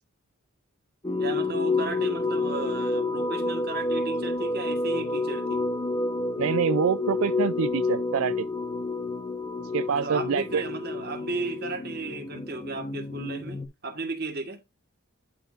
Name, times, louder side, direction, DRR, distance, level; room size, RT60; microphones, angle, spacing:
sound 1, 1.0-13.7, left 3 dB, 20° left, 1.0 m, -29 dB
voice 1, 1.2-5.6 9.9-14.6, right 3 dB, 50° right, 1.6 m, -34 dB
voice 2, 6.4-8.5 9.6-10.6, right 7 dB, 80° right, 0.4 m, -26 dB
11.5 x 4.2 x 2.6 m
head